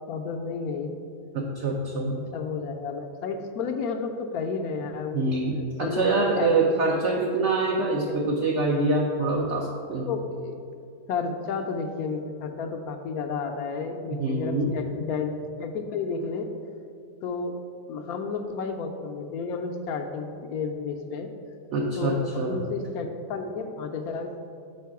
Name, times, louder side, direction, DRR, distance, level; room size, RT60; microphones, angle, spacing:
voice 1, 0.1-0.9 2.3-5.4 5.8-6.5 6.9-7.3 7.7-7.8 10.1-10.6 11.1-15.3 15.6-16.5 17.2-17.5 17.9-21.3 22.0-24.5, left 4 dB, 70° left, 4 dB, 1.0 m, -31 dB
voice 2, 1.3-2.2 5.1-10.2 14.1-14.7 21.7-22.6, right 3 dB, 60° right, -1 dB, 0.7 m, -25 dB
7.5 x 4.8 x 4.6 m, 2.4 s
omnidirectional pair, 1.8 m